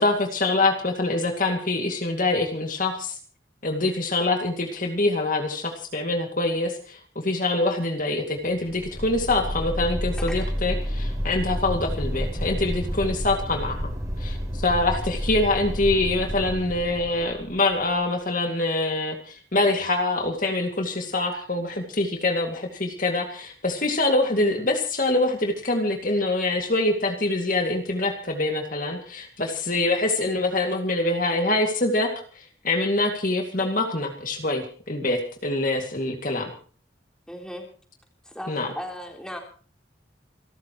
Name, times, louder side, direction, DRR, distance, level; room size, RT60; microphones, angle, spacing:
voice 1, 0.0-3.2 3.6-13.9 14.2-32.1 32.3-36.5 38.5-38.7, left 2 dB, 45° left, 3 dB, 2.3 m, -25 dB
sound 1, 8.6-17.9, equal, 20° right, 5.0 m, -30 dB
voice 2, 10.2-10.5 37.3-37.7 38.2-39.4, equal, 5° left, 1 dB, 3.7 m, -37 dB
28.5 x 13.5 x 3.1 m, 0.42 s
head